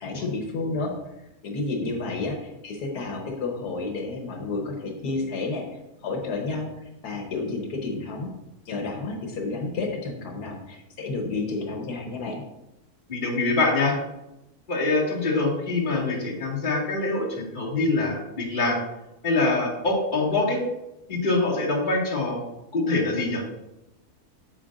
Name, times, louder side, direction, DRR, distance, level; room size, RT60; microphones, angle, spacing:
voice 1, 0.0-0.9 1.4-5.7 6.0-8.3 8.6-12.4, left 3 dB, 85° left, 1 dB, 1.6 m, -31 dB
voice 2, 13.1-14.0 14.7-18.8 19.2-20.6 21.1-22.4 22.7-23.4, left 3 dB, 30° left, -5 dB, 2.1 m, -24 dB
8.6 x 7.6 x 2.5 m, 0.93 s
omnidirectional pair, 1.6 m